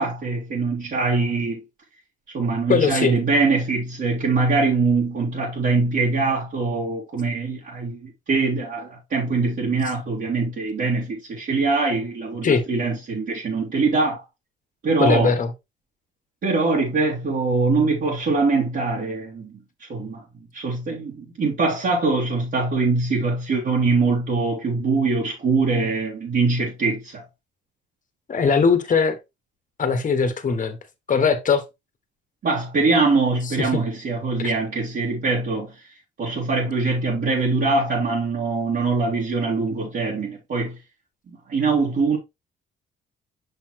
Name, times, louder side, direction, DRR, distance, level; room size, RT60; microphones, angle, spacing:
voice 1, 0.0-1.6 2.3-14.2 14.8-15.4 16.4-20.2 20.5-27.2 32.4-40.8 41.3-42.2, right 3 dB, 55° right, 2.3 m, -23 dB
voice 2, 2.7-3.2 12.4-12.6 15.0-15.5 28.3-29.2 29.8-30.8 31.1-31.6 33.4-33.8, left 5 dB, 40° left, 1.4 m, -20 dB
5.8 x 5.5 x 3.0 m
cardioid pair, 90°, 20 cm